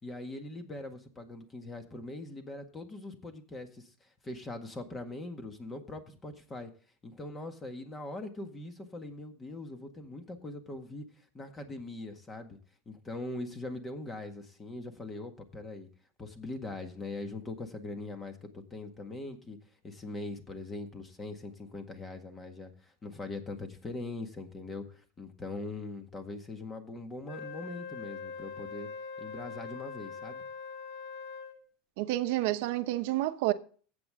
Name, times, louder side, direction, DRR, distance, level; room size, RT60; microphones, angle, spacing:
voice 1, 0.0-6.7 7.0-11.0 11.3-12.6 12.8-15.9 16.2-19.6 19.8-28.9 29.2-30.4, left 2 dB, 15° left, 1.8 m, -41 dB
Wind instrument woodwind instrument, 27.3-31.6, left 5 dB, 75° left, 2.9 m, -42 dB
voice 2, 32.0-33.5, right 16 dB, 70° right, 0.9 m, -29 dB
14.0 x 8.5 x 3.7 m
supercardioid pair, 145°, 0 cm